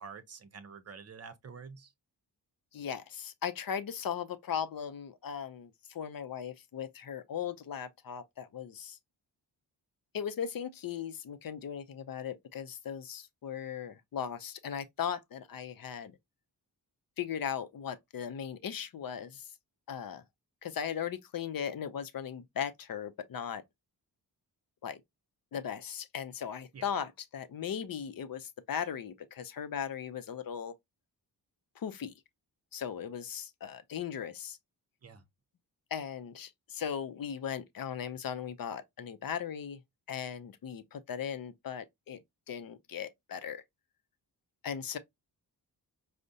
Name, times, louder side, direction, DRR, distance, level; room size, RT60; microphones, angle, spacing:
voice 1, 0.0-1.9 26.7-26.9 35.0-35.2, right 5 dB, 35° right, 0.6 m, -48 dB
voice 2, 2.7-9.0 10.1-16.2 17.2-19.5 19.9-20.2 20.6-23.6 24.8-25.0 25.5-30.7 31.8-32.1 32.7-34.6 35.9-39.8 40.1-42.2 42.5-43.6 44.6-45.0, left 8 dB, 55° left, 0.6 m, -38 dB
4.8 x 2.1 x 2.7 m
cardioid pair, 85°, 41 cm